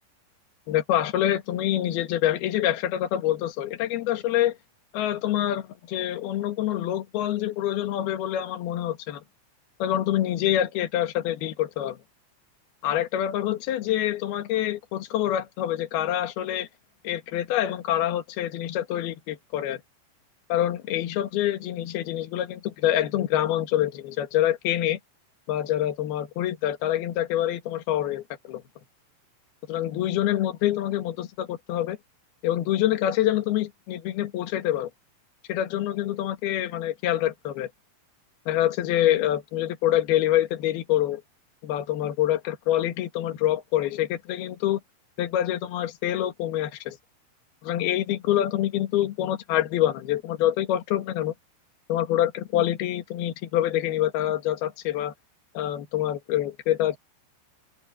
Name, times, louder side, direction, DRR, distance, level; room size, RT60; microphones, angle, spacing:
voice 1, 0.7-4.5 4.9-9.2 9.8-12.0 12.8-16.7 17.0-19.8 20.5-25.0 25.5-28.6 29.7-32.0 32.4-34.9 35.5-37.7 38.5-41.2 41.6-44.8 45.2-47.0 47.6-51.3 51.9-55.1 55.5-57.0, left 12 dB, 60° left, 3.3 m, -26 dB
open air
omnidirectional pair, 5.5 m